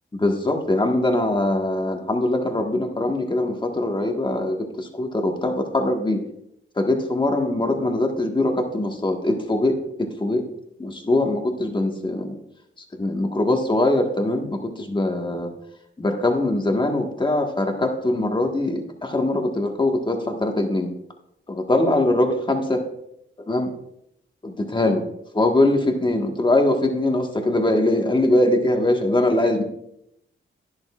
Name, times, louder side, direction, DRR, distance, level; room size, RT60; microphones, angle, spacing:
voice 1, 0.1-6.2 6.8-10.5 10.8-12.3 12.9-15.5 16.0-20.9 21.5-22.8 23.5-23.7 24.4-25.0 25.3-29.6, left 1 dB, 20° left, 3 dB, 1.6 m, -22 dB
11.0 x 10.5 x 2.5 m, 0.79 s
cardioid pair, 75°, 21 cm